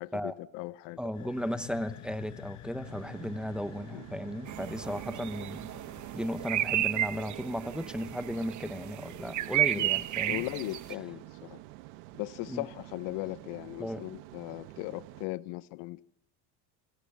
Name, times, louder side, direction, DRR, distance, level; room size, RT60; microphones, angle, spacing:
voice 1, 0.0-1.3 3.9-4.0 4.8-5.0 9.4-9.5 9.7-9.9 10.2-11.6 12.2-16.0, left 20 dB, 75° left, 0.9 m, -38 dB
sound 1, 1.0-8.6, left 15 dB, 40° left, 1.0 m, -49 dB
voice 2, 1.0-5.7 6.1-10.4 12.5-12.7 13.8-14.0, equal, ahead, 0.9 m, -35 dB
sound 2, 2.8-15.3, right 18 dB, 85° right, 1.3 m, -49 dB
sound 3, 4.5-10.9, right 14 dB, 40° right, 1.0 m, -33 dB
27.5 x 20.5 x 7.3 m
cardioid pair, 140°, 43 cm